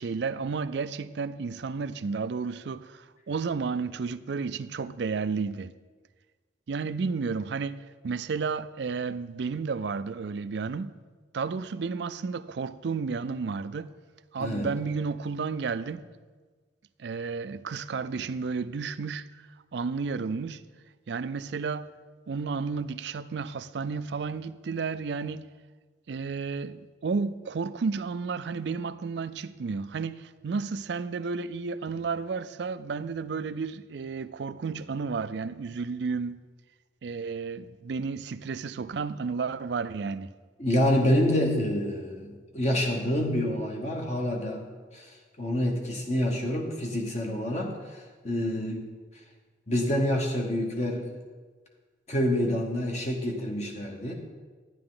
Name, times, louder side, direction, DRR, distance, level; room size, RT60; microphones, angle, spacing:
voice 1, 0.0-5.7 6.7-11.0 11.3-13.9 14.3-16.1 17.0-19.5 19.7-20.6 21.1-21.9 22.3-25.5 26.1-36.4 37.0-40.3, right 5 dB, 70° right, 0.4 m, -32 dB
voice 2, 14.4-14.7 40.6-44.7 44.9-48.8 49.7-51.2 52.1-54.1, left 1 dB, 40° left, 1.1 m, -27 dB
13.0 x 9.7 x 3.8 m
head